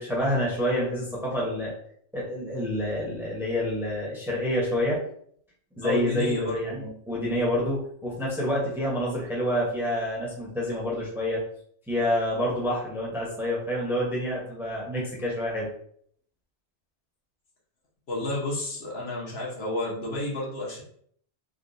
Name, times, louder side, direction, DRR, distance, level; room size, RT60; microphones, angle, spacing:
voice 1, 0.0-1.7 2.1-5.0 5.8-11.4 11.9-15.7, left 1 dB, ahead, -4 dB, 0.8 m, -28 dB
voice 2, 5.8-6.9 18.1-20.8, left 2 dB, 65° left, -3 dB, 1.1 m, -31 dB
3.6 x 2.3 x 2.6 m, 0.63 s
omnidirectional pair, 1.2 m